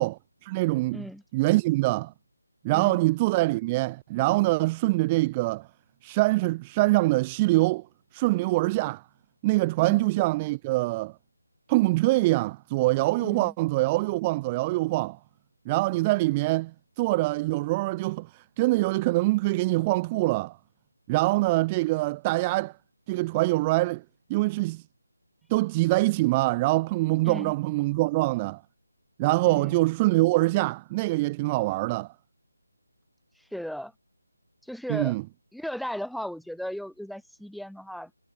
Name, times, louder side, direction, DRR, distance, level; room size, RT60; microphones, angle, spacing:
voice 1, 0.0-1.0 1.3-2.1 2.6-5.7 6.0-7.8 8.1-9.0 9.4-11.1 11.7-15.2 15.7-20.6 21.1-22.7 23.1-24.0 24.3-24.8 25.5-28.6 29.2-32.1 34.9-35.2, right 21 dB, 15° right, 2.7 m, -24 dB
voice 2, 0.9-1.2 2.7-3.0 9.8-10.1 13.2-13.5 27.2-27.5 29.5-29.8 33.5-33.9 34.6-35.2 35.5-38.1, equal, ahead, 5.8 m, -36 dB
figure-of-eight pair, 165°, 0 cm